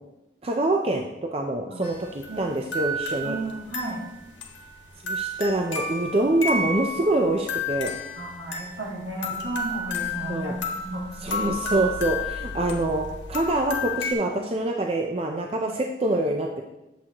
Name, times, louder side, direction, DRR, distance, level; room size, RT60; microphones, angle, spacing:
voice 1, 0.4-3.4 5.0-7.9 10.3-10.6 11.2-16.6, right 2 dB, 30° right, 2 dB, 0.5 m, -25 dB
sound 1, 1.8-14.1, left 2 dB, 85° left, 1.3 m, -32 dB
voice 2, 3.2-4.0 8.2-11.0 15.6-15.7, right 2 dB, 75° right, -4 dB, 2.4 m, -33 dB
8.6 x 7.4 x 2.9 m, 0.97 s
head